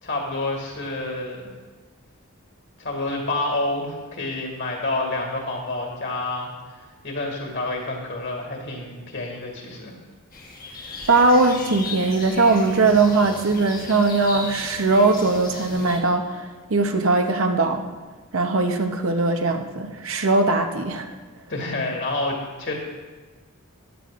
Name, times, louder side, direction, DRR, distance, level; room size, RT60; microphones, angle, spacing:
voice 1, 0.0-1.4 2.8-9.9 21.5-22.7, left 2 dB, 55° left, 1 dB, 2.3 m, -28 dB
sound 1, 10.3-16.0, left 3 dB, 40° left, 1.4 m, -37 dB
voice 2, 11.1-17.9 18.3-21.1, right 3 dB, 60° right, 5 dB, 0.9 m, -20 dB
14.0 x 11.0 x 2.5 m, 1.3 s
head